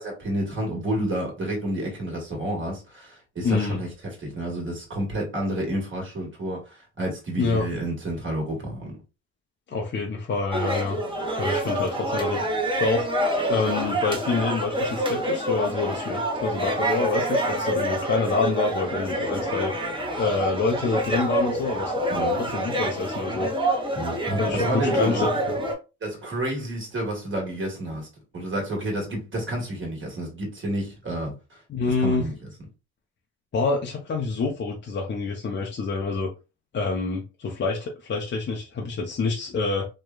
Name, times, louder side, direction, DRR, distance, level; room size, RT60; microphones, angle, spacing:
voice 1, 0.0-3.9 4.2-9.0 22.1-22.4 23.9-25.3 26.0-28.1 28.3-31.6 32.0-32.3, right 1 dB, 40° right, 1.4 m, -30 dB
voice 2, 3.4-3.8 7.4-7.7 9.7-11.0 11.4-12.4 12.7-13.1 13.5-19.7 20.2-23.5 24.4-25.7 31.7-32.3 33.5-36.3 36.7-39.9, left 4 dB, 40° left, 0.6 m, -27 dB
sound 1, 10.5-25.7, right 1 dB, 15° right, 0.9 m, -27 dB
3.0 x 2.2 x 2.3 m
cardioid pair, 90°, 30 cm